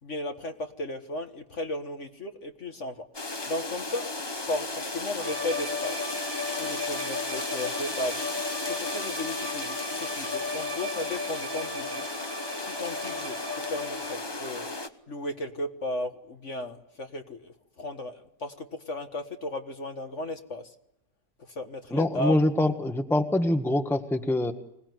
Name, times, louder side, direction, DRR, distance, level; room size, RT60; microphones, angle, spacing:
voice 1, 0.0-3.1 3.5-4.1 4.5-6.1 6.6-8.2 8.7-12.1 12.6-14.7 15.1-20.7 21.6-22.4, left 1 dB, 45° left, 5 dB, 1.8 m, -35 dB
sound 1, 3.1-14.9, left 2 dB, 20° left, 1.0 m, -35 dB
sound 2, 5.2-14.4, left 2 dB, 50° right, 3.4 m, -36 dB
voice 2, 21.9-24.5, left 1 dB, ahead, 5 dB, 1.4 m, -24 dB
25.5 x 19.0 x 9.5 m, 0.80 s
omnidirectional pair, 1.8 m